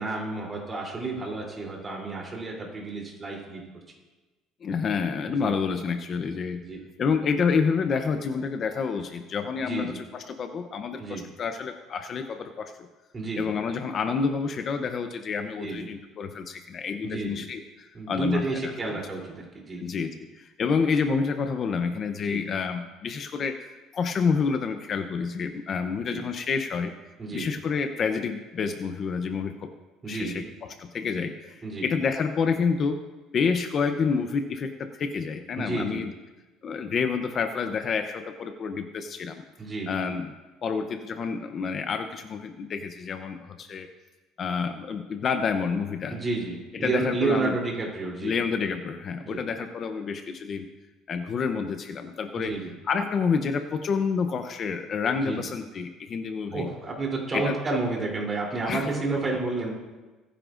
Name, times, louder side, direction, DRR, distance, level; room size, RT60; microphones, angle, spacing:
voice 1, 0.0-3.6 5.3-5.5 6.6-6.8 9.6-10.0 11.0-11.2 13.1-13.5 15.6-15.9 17.0-17.4 17.9-19.8 22.2-22.5 26.1-26.2 27.2-27.5 30.0-30.5 31.6-31.8 35.5-36.0 39.6-40.0 46.1-48.3 49.2-49.4 52.3-52.7 55.2-55.4 56.5-59.7, right 3 dB, 20° right, -1 dB, 3.3 m, -31 dB
voice 2, 4.6-6.6 7.0-12.7 13.4-19.0 19.8-26.9 27.3-29.7 30.1-33.0 33.3-36.1 36.6-39.4 39.9-40.3 40.6-43.9 44.4-46.2 46.7-47.6 48.2-50.7 51.1-52.5 52.8-56.7 57.3-57.6 58.6-58.9, left 5 dB, 35° left, 7 dB, 0.7 m, -28 dB
23.0 x 10.0 x 2.6 m, 1.2 s
cardioid pair, 145°, 0 cm